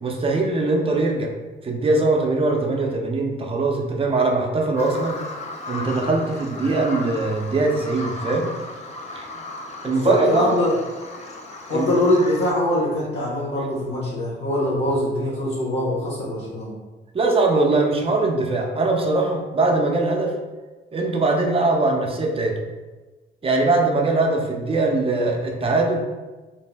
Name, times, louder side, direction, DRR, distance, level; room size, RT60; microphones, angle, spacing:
voice 1, 0.0-1.3 1.6-5.2 5.7-8.5 9.1-9.3 9.8-10.5 11.7-12.0 17.1-20.3 20.9-22.6 23.4-26.0, right 3 dB, 30° right, 1 dB, 0.5 m, -21 dB
Bird vocalization bird call bird song, 4.8-12.5, left 2 dB, 35° left, 0.4 m, -35 dB
voice 2, 9.8-10.7 11.7-16.7, left 1 dB, 60° left, -7 dB, 0.9 m, -23 dB
2.6 x 2.0 x 3.3 m, 1.2 s
cardioid pair, 90°, 20 cm